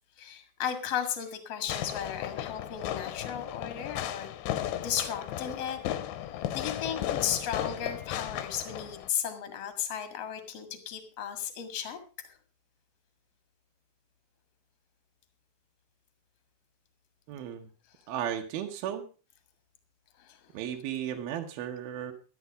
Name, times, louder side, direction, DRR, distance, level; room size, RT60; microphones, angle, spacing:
voice 1, 0.2-5.8 6.5-12.0 12.2-12.4 20.2-20.4, left 9 dB, 50° left, 8 dB, 2.3 m, -35 dB
Fireworks, 1.7-9.1, left 12 dB, 90° left, 3.0 m, -35 dB
voice 2, 17.3-17.7 18.1-19.1 20.5-22.1, right 10 dB, 70° right, 3 dB, 2.7 m, -35 dB
12.5 x 11.0 x 4.9 m, 0.34 s
omnidirectional pair, 4.9 m